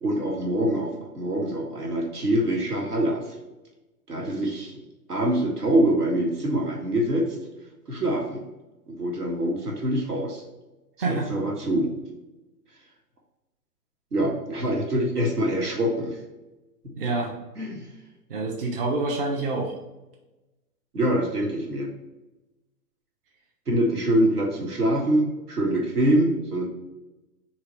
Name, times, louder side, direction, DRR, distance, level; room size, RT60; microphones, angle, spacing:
voice 1, 0.0-3.2 4.1-4.8 5.1-7.3 7.9-8.4 8.9-10.4 11.1-11.9 14.1-16.2 17.6-17.9 20.9-21.9 23.7-26.6, right 1 dB, 75° right, 0 dB, 1.4 m, -24 dB
voice 2, 17.0-17.3 18.3-19.7, right 3 dB, 35° right, -1 dB, 0.8 m, -27 dB
4.0 x 3.1 x 4.3 m, 1.0 s
figure-of-eight pair, 120°, 47 cm